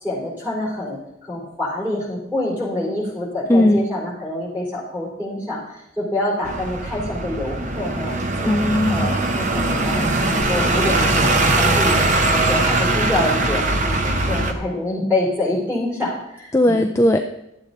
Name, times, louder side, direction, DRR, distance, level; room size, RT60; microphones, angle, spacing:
voice 1, 0.0-8.5 8.9-16.9, left 1 dB, 10° right, -6 dB, 4.1 m, -26 dB
voice 2, 3.5-3.8 8.4-9.1 16.5-17.2, left 1 dB, 15° left, 4 dB, 0.4 m, -17 dB
sound 1, 6.4-14.5, right 2 dB, 40° right, 0.8 m, -20 dB
12.0 x 8.1 x 4.0 m, 0.84 s
head